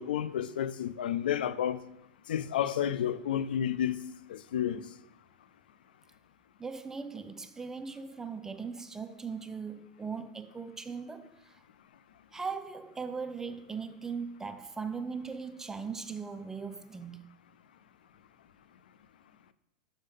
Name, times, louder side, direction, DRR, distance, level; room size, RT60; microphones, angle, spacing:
voice 1, 0.0-1.8 2.3-4.0 4.3-4.8, left 10 dB, 85° left, 0.3 m, -30 dB
voice 2, 6.6-11.6 12.3-17.2, right 5 dB, 10° right, 0.4 m, -39 dB
5.1 x 3.6 x 5.4 m
supercardioid pair, 130°, 5 cm